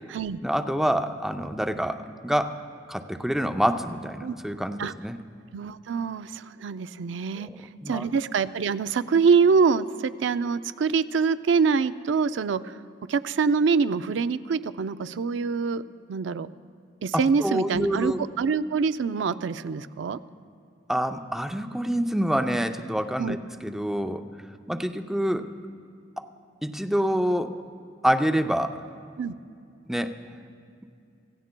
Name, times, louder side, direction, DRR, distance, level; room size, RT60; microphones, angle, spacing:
voice 1, 0.4-2.6 2.9-5.2 7.4-7.6 7.8-8.1 17.1-18.2 20.9-23.4 23.6-24.3 24.7-25.5 26.2-26.3 26.6-27.6 28.0-28.8 29.9-30.2, equal, ahead, 6 dB, 0.5 m, -26 dB
voice 2, 5.5-7.5 7.9-12.8 13.1-15.8 16.1-16.5 17.0-20.2 23.2-23.4 29.2-29.3, right 5 dB, 75° right, 13 dB, 0.4 m, -25 dB
26.0 x 16.5 x 2.2 m, 2.4 s
head